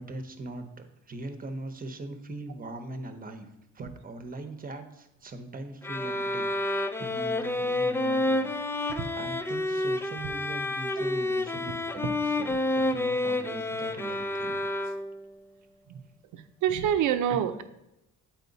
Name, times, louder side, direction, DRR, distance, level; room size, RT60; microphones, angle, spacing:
voice 1, 0.0-3.5 3.7-14.6, right 2 dB, 30° right, 8 dB, 1.0 m, -41 dB
sound 1, 5.8-15.3, left 2 dB, 10° left, 0.4 m, -29 dB
voice 2, 16.3-17.6, right 9 dB, 80° right, 9 dB, 0.7 m, -27 dB
8.3 x 4.5 x 4.0 m, 0.87 s
cardioid pair, 90°, 30 cm